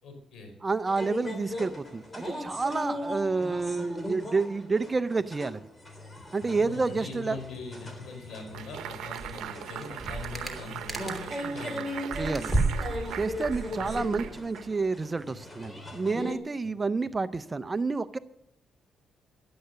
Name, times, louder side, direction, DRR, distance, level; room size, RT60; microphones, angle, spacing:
voice 1, 0.0-0.5 3.2-3.4 6.5-12.1 13.8-14.1 16.6-16.7, left 3 dB, 70° left, 5 dB, 4.7 m, -42 dB
voice 2, 0.6-5.6 6.3-7.4 12.2-12.5 13.2-18.2, right 4 dB, 25° right, 13 dB, 0.6 m, -29 dB
sound 1, 0.9-16.3, left 1 dB, 20° left, 3.2 m, -39 dB
sound 2, 8.5-15.0, right 11 dB, 85° right, 0.8 m, -40 dB
sound 3, 9.2-9.5 9.8-11.4 11.8-14.4, right 2 dB, 5° right, 3.0 m, -32 dB
12.0 x 11.5 x 6.7 m, 0.78 s
cardioid pair, 90°, 0 cm